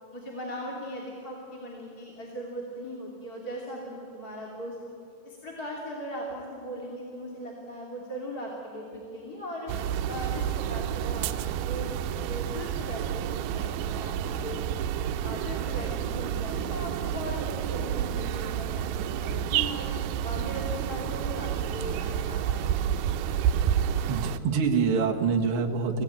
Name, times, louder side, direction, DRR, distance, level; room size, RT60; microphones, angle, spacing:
voice 1, 0.1-4.9 5.2-14.9 15.2-19.9 20.2-22.9 23.6-23.7, equal, 25° left, -2 dB, 2.7 m, -39 dB
sound 1, 9.7-24.4, right 9 dB, 90° right, 2.6 m, -30 dB
voice 2, 24.1-26.0, right 5 dB, 50° right, 2 dB, 1.7 m, -25 dB
24.5 x 16.5 x 8.9 m, 2.7 s
omnidirectional pair, 4.3 m